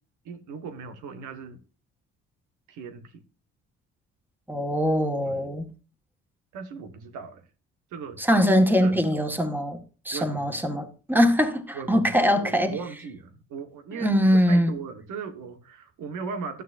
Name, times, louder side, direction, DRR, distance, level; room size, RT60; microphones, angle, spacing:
voice 1, 0.2-1.6 2.7-3.2 5.2-5.5 6.5-7.4 7.9-8.4 8.8-8.9 10.1-10.4 11.7-16.6, right 5 dB, 85° right, 1.6 m, -38 dB
voice 2, 4.5-5.7 8.2-12.8 14.0-14.7, equal, 5° right, 1.7 m, -22 dB
12.5 x 9.3 x 2.6 m
cardioid pair, 90°, 30 cm